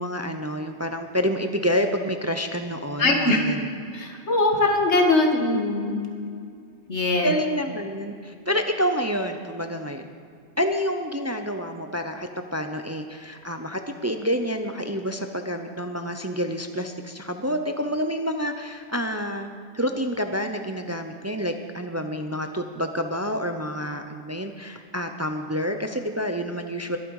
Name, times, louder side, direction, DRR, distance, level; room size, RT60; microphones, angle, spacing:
voice 1, 0.0-3.6 7.2-10.1 10.6-19.5 19.7-27.0, equal, 15° right, 6 dB, 0.6 m, -28 dB
voice 2, 3.0-3.4 3.9-5.9 6.9-7.3, left 2 dB, 90° left, 2 dB, 2.0 m, -21 dB
22.0 x 9.0 x 4.8 m, 2.3 s
omnidirectional pair, 1.1 m